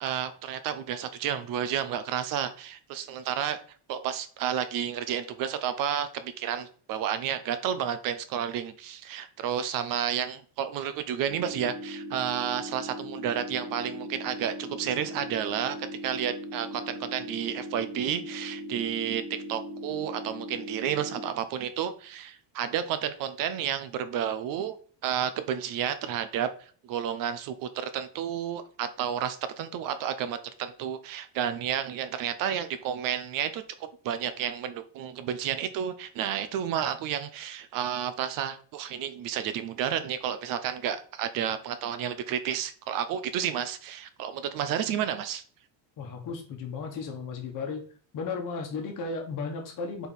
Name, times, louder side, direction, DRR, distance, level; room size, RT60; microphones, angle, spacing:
voice 1, 0.0-3.6 3.9-24.8 25.0-26.5 26.8-45.4, right 9 dB, 45° right, 0.6 m, -31 dB
sound 1, 11.3-21.3, equal, 90° right, 2.3 m, -39 dB
voice 2, 46.0-47.8 48.1-50.1, left 4 dB, 40° left, 1.3 m, -34 dB
4.5 x 4.5 x 5.2 m
cardioid pair, 180°, 50 cm